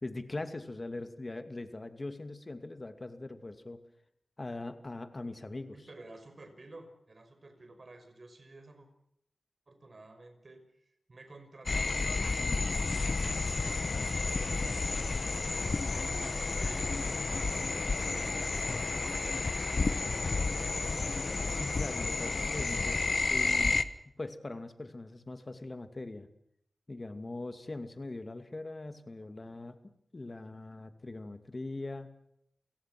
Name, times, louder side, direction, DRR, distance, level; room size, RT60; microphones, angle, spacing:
voice 1, 0.0-3.8 4.4-5.8 21.4-23.0 23.3-23.9 24.2-26.3 26.9-29.8 30.1-32.1, left 2 dB, 40° left, 8 dB, 2.5 m, -41 dB
voice 2, 5.7-8.9 9.7-10.6 11.1-14.6 14.9-19.4, right 2 dB, 50° right, 7 dB, 5.6 m, -52 dB
sound 1, 11.7-23.8, left 3 dB, 55° left, 1.2 m, -31 dB
28.5 x 18.0 x 6.2 m, 0.75 s
cardioid pair, 60°, 0 cm